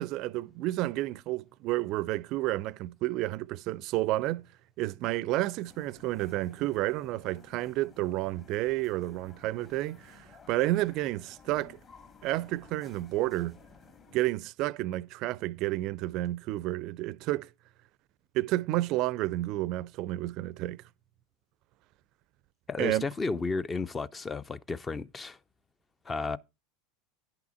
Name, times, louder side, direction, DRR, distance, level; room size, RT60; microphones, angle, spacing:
voice 1, 0.0-4.4 4.8-11.8 12.2-13.6 14.1-17.5 18.3-20.8 22.8-23.0, right 16 dB, 50° right, 0.4 m, -31 dB
sound 1, 5.6-14.2, left 6 dB, 35° left, 2.0 m, -56 dB
voice 2, 22.7-25.4 26.1-26.4, left 4 dB, 20° left, 0.4 m, -33 dB
10.5 x 5.8 x 4.3 m
figure-of-eight pair, 80°, 0 cm